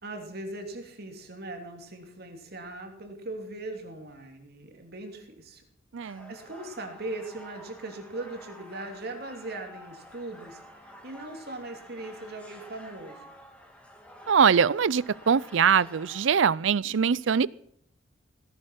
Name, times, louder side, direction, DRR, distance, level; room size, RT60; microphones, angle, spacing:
voice 1, 0.0-5.6 6.0-13.3, right 2 dB, 50° right, 4 dB, 2.9 m, -40 dB
voice 2, 5.9-6.3 14.3-17.5, right 6 dB, 70° right, 23 dB, 0.5 m, -22 dB
sound 1, 6.0-16.3, left 1 dB, 5° left, 2.4 m, -50 dB
17.5 x 11.0 x 5.9 m, 0.69 s
head